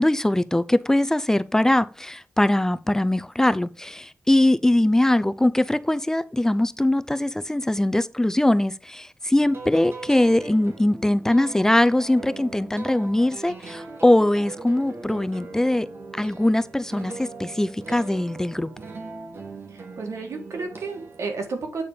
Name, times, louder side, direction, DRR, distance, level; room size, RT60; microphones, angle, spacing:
voice 1, 0.0-15.9 16.1-18.7, left 1 dB, 10° left, 0.4 m, -21 dB
sound 1, 9.4-21.2, right 3 dB, 55° right, 1.9 m, -40 dB
voice 2, 19.7-21.8, right 4 dB, 85° right, 2.0 m, -32 dB
8.4 x 4.3 x 5.1 m
wide cardioid pair, 125°, 5 cm